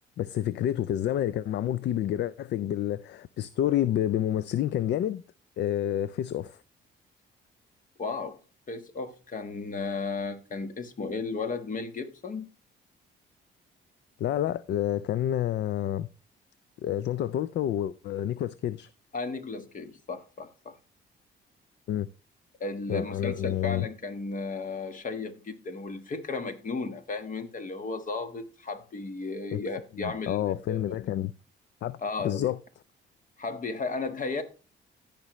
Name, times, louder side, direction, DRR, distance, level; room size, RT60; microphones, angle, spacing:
voice 1, 0.2-5.2 5.6-6.6 14.2-16.1 16.8-18.9 21.9-22.1 22.9-23.9 29.5-29.6 30.0-31.3 31.8-32.0 32.2-32.6, left 11 dB, 60° left, 0.4 m, -29 dB
voice 2, 8.0-8.4 8.7-12.5 19.1-20.7 22.6-30.8 32.0-32.5 33.4-34.4, left 3 dB, 40° left, 1.5 m, -34 dB
15.5 x 5.3 x 3.1 m
cardioid pair, 90°, 20 cm